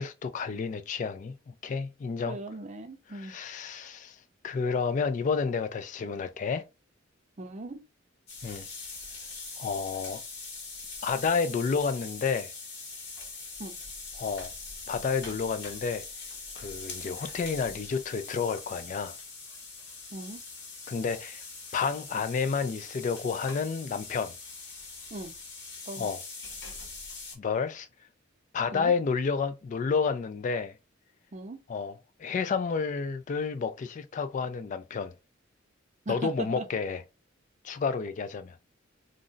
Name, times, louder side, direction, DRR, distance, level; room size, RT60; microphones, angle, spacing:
voice 1, 0.0-2.4 3.1-4.2 4.4-6.7 8.4-8.7 9.6-10.2 11.0-12.5 14.2-14.5 14.9-16.0 16.6-19.2 20.9-21.5 21.7-24.3 26.0-26.2 27.4-27.9 28.5-30.7 31.7-35.1 36.1-37.0 37.6-38.6, left 5 dB, 40° left, 0.3 m, -30 dB
voice 2, 2.3-3.3 7.4-7.8 13.6-13.7 20.1-20.4 25.1-25.3 25.9-26.1 28.7-28.9 31.3-31.6 36.1-36.7, right 2 dB, 35° right, 0.5 m, -39 dB
sound 1, 8.3-27.3, left 4 dB, 60° left, 1.2 m, -42 dB
2.5 x 2.1 x 3.7 m
head